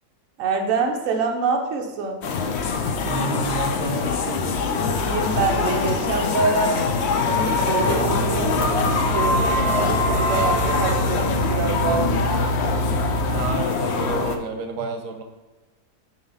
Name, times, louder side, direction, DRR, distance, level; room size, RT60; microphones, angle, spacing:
voice 1, 0.4-2.2 4.9-12.5, right 4 dB, 60° right, 2 dB, 1.1 m, -26 dB
sound 1, 2.2-14.4, left 4 dB, 65° left, 0.6 m, -23 dB
voice 2, 3.0-4.5 13.3-15.2, right 5 dB, 85° right, 5 dB, 1.3 m, -30 dB
sound 2, 4.4-11.2, equal, 30° right, 1.9 m, -33 dB
sound 3, 7.8-13.5, right 3 dB, 25° left, 1.3 m, -27 dB
6.8 x 2.9 x 5.5 m, 1.2 s
omnidirectional pair, 1.7 m